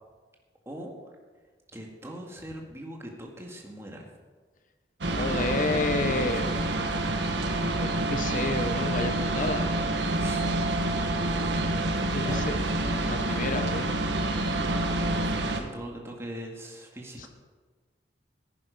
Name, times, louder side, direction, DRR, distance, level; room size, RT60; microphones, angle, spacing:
voice 1, 1.7-4.1 10.2-10.5 11.8-12.7 15.1-17.3, equal, 15° right, 0 dB, 1.9 m, -41 dB
voice 2, 5.0-6.5 7.8-9.9 12.1-12.6 13.1-14.1 17.2-17.3, left 3 dB, 45° left, 8 dB, 0.7 m, -31 dB
sound 1, 5.0-15.6, right 1 dB, 75° right, 1.3 m, -27 dB
15.0 x 10.5 x 5.2 m, 1.4 s
head